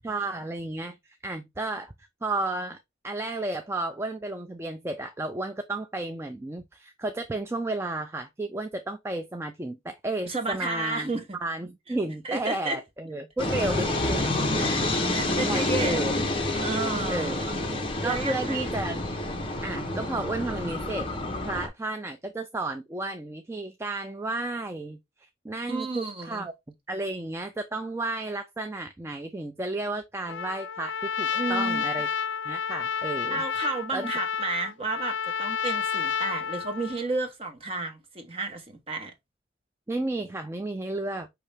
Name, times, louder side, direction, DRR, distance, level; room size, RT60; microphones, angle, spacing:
voice 1, 0.0-1.9 2.2-11.1 11.4-16.1 17.1-17.5 18.0-19.0 19.6-21.1 21.4-26.5 26.9-32.1 32.5-33.4 33.9-34.1 39.9-41.3, right 2 dB, 15° right, 0.3 m, -33 dB
voice 2, 10.3-11.4 11.9-12.0 12.2-12.8 14.5-14.8 15.1-16.2 16.5-18.7 25.7-26.5 31.3-31.8 33.3-39.1, right 3 dB, 30° right, 1.1 m, -32 dB
sound 1, 13.4-21.7, left 2 dB, 25° left, 0.8 m, -28 dB
Trumpet, 30.3-37.1, left 7 dB, 75° left, 0.4 m, -30 dB
5.4 x 2.9 x 3.3 m
head